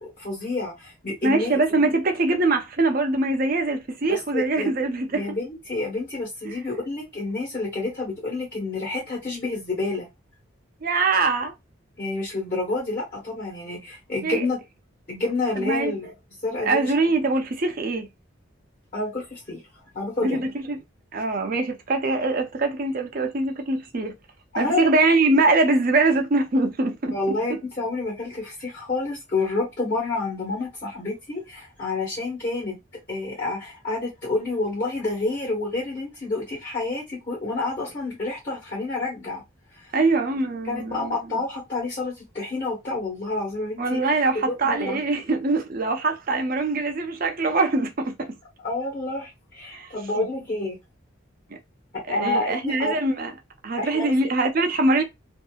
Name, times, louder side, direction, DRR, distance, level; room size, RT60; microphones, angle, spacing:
voice 1, 0.0-1.6 4.1-4.7 5.1-10.1 12.0-14.6 15.1-16.1 16.4-16.9 18.9-19.6 19.9-20.5 24.5-24.8 27.1-32.8 33.1-39.4 40.6-44.1 44.4-45.0 48.6-50.8 52.1-53.0 53.8-54.1, left 2 dB, 40° left, 1.3 m, -29 dB
voice 2, 1.2-5.2 6.4-6.5 10.8-11.5 14.2-14.5 15.6-15.9 16.7-18.1 20.2-20.8 21.1-24.1 24.6-27.2 27.5-27.6 39.9-41.2 43.8-48.3 49.7-49.9 50.2-50.3 52.1-53.3 53.6-55.0, right 3 dB, 45° right, 0.5 m, -23 dB
2.8 x 2.5 x 2.3 m
head